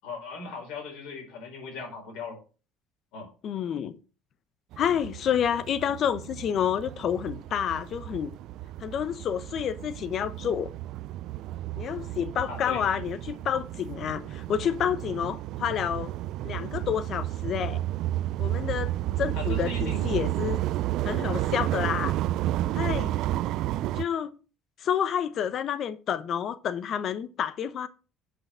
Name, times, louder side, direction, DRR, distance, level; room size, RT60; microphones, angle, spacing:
voice 1, 0.0-2.4 3.1-3.3 12.5-12.8 19.3-20.0, left 4 dB, 75° left, 4.9 m, -38 dB
voice 2, 3.4-4.0 4.8-8.3 8.8-10.7 11.8-16.1 16.4-17.8 18.4-18.9 19.2-20.6 21.0-22.1 22.7-23.1 23.9-24.3 24.8-27.9, left 9 dB, 55° left, 1.0 m, -29 dB
sound 1, 4.7-24.0, right 14 dB, 65° right, 0.3 m, -32 dB
8.3 x 5.7 x 5.8 m
supercardioid pair, 75°, 0 cm